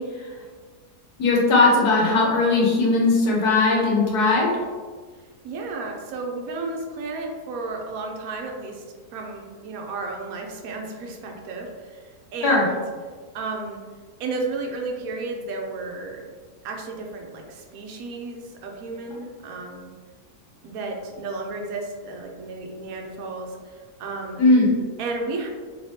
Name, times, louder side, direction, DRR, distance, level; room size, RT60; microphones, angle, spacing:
voice 1, 1.2-4.5 12.4-12.7 24.4-24.7, left 3 dB, 80° left, -3 dB, 1.4 m, -18 dB
voice 2, 5.4-8.8 9.1-12.0 12.3-12.8 13.3-13.8 14.2-16.2 16.6-19.9 20.6-23.6 24.0-24.4 25.0-25.5, right 3 dB, 75° right, 1 dB, 1.0 m, -33 dB
3.3 x 3.1 x 2.7 m, 1.5 s
omnidirectional pair, 1.7 m